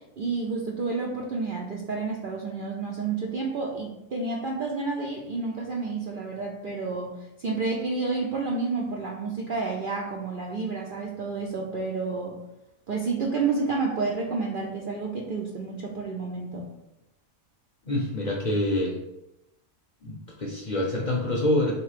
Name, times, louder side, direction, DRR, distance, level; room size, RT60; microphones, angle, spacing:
voice 1, 0.2-7.1 7.4-12.4 12.9-16.8, right 4 dB, 60° right, -2 dB, 0.5 m, -30 dB
voice 2, 17.9-19.0 20.0-21.7, left 1 dB, 45° left, -2 dB, 0.6 m, -26 dB
3.6 x 3.0 x 4.8 m, 0.91 s
omnidirectional pair, 1.4 m